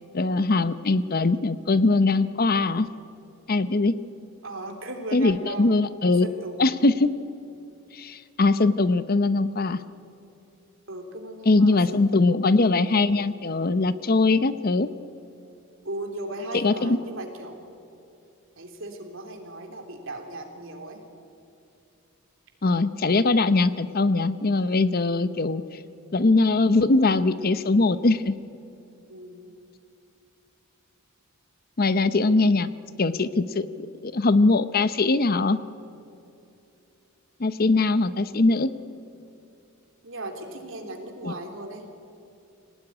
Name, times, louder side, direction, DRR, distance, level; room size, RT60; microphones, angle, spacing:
voice 1, 0.1-2.9 3.5-4.0 5.1-6.3 6.6-7.1 7.9-9.8 11.5-14.9 16.5-17.0 22.6-25.6 26.1-28.4 31.8-32.7 33.0-33.7 34.0-35.6 37.4-38.7 41.2-41.3, left 3 dB, 45° left, 13 dB, 0.7 m, -21 dB
voice 2, 4.4-6.7 10.9-12.2 15.8-17.6 18.6-21.0 29.1-29.5 38.4-38.8 40.0-41.8, right 1 dB, 65° right, 3 dB, 3.5 m, -37 dB
25.5 x 18.0 x 9.8 m, 2.7 s
head